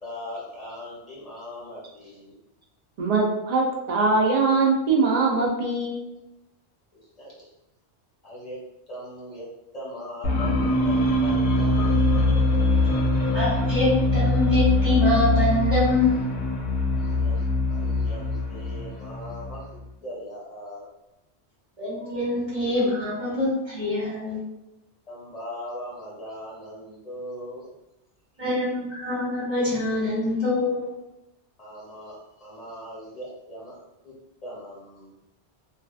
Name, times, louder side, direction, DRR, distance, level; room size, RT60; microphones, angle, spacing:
voice 1, 0.0-2.3 6.9-7.5 8.2-8.6 8.9-12.0 17.0-20.9 25.1-27.7 31.6-33.8 34.0-34.1 34.4-35.1, equal, 35° left, -6 dB, 1.0 m, -40 dB
voice 2, 3.0-6.0, right 3 dB, 60° right, 0 dB, 0.4 m, -22 dB
sound 1, 10.2-19.8, left 2 dB, 75° left, 0.8 m, -23 dB
voice 3, 13.3-16.2 21.8-24.4 28.4-30.9, left 2 dB, 35° right, -12 dB, 1.0 m, -24 dB
2.4 x 2.2 x 2.3 m, 0.91 s
omnidirectional pair, 1.2 m